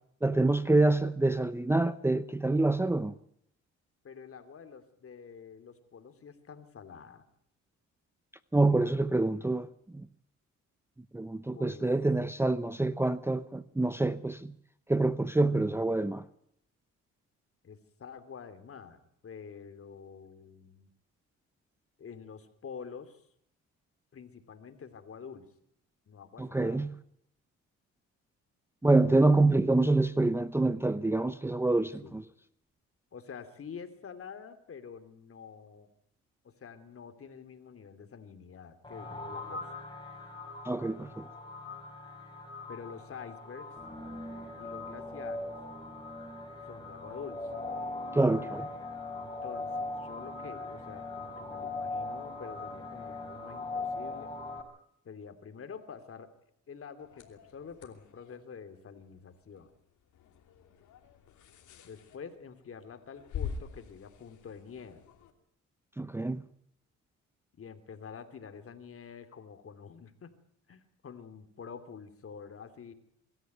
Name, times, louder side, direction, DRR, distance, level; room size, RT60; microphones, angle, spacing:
voice 1, 0.2-3.1 8.5-9.7 9.9-10.1 11.1-14.5 14.9-16.2 26.4-26.9 28.8-32.2 40.6-41.3 48.1-48.7 66.0-66.4, right 2 dB, 10° right, 0.7 m, -26 dB
voice 2, 4.0-7.2 11.5-11.9 17.6-20.9 22.0-23.3 24.1-25.5 26.1-26.9 32.0-32.2 33.1-35.9 36.4-39.7 42.7-43.7 44.6-45.6 46.7-47.5 49.2-54.3 55.0-56.3 56.7-59.7 61.8-65.0 67.6-70.3 70.7-72.9, left 6 dB, 50° left, 2.9 m, -47 dB
sound 1, 38.8-54.6, left 2 dB, 15° left, 5.2 m, -40 dB
sound 2, 57.0-65.3, left 7 dB, 75° left, 3.0 m, -46 dB
24.0 x 13.0 x 9.2 m
cardioid pair, 90°, 30 cm